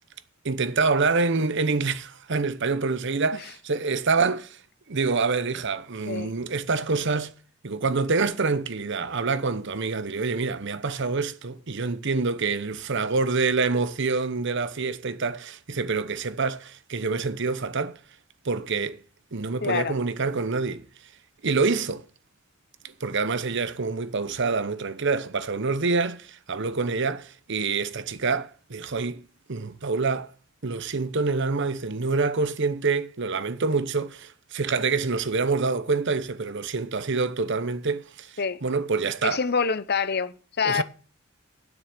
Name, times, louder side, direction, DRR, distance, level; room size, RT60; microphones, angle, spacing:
voice 1, 0.4-4.6 4.9-7.3 7.6-18.0 18.4-19.0 19.3-20.8 21.4-22.1 22.8-29.2 29.5-30.3 30.6-38.3 38.6-39.4 40.6-40.8, right 4 dB, 60° right, 0.9 m, -26 dB
voice 2, 19.6-20.0 38.4-38.6 39.2-40.8, left 5 dB, 50° left, 0.8 m, -26 dB
9.9 x 8.0 x 7.5 m
head